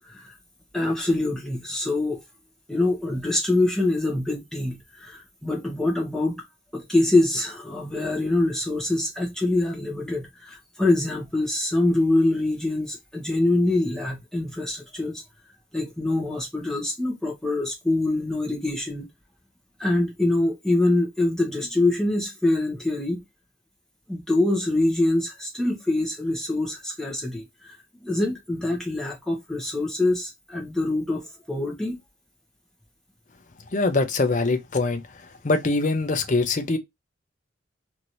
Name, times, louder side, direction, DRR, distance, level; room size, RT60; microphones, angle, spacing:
voice 1, 0.7-2.2 2.7-6.4 6.7-15.2 15.7-19.1 19.8-23.2 24.1-27.7 28.0-32.0, left 2 dB, 5° left, 0.9 m, -24 dB
voice 2, 33.7-36.8, left 3 dB, 40° left, 0.5 m, -23 dB
2.9 x 2.6 x 3.0 m
head